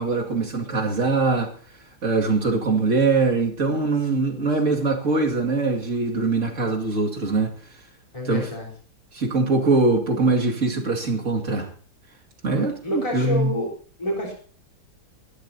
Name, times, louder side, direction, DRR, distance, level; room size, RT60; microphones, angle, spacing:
voice 1, 0.0-1.5 2.0-7.5 8.3-8.5 9.1-11.7 12.4-13.5, right 3 dB, 45° right, 2.7 m, -22 dB
voice 2, 4.2-4.8 8.1-8.7 12.5-13.7 14.0-14.3, left 1 dB, 20° left, 4.4 m, -29 dB
23.0 x 13.0 x 2.9 m
omnidirectional pair, 1.8 m